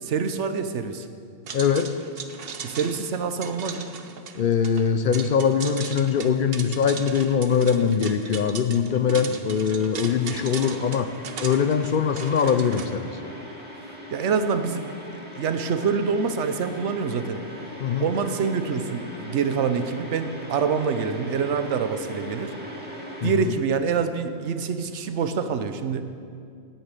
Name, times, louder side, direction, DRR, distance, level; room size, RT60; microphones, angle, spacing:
voice 1, 0.0-1.1 2.6-3.9 8.8-9.4 14.1-14.9 15.4-17.4 18.0-22.5 23.2-26.0, right 5 dB, 85° right, 9 dB, 1.1 m, -26 dB
voice 2, 1.5-2.0 4.4-11.1 11.4-13.2 17.8-18.1 23.2-23.5, left 7 dB, 60° left, 10 dB, 0.6 m, -22 dB
sound 1, 1.5-12.9, right 6 dB, 60° right, 0.9 m, -38 dB
sound 2, 10.0-23.3, equal, 10° right, 1.8 m, -40 dB
10.0 x 8.9 x 8.2 m, 2.3 s
omnidirectional pair, 1.2 m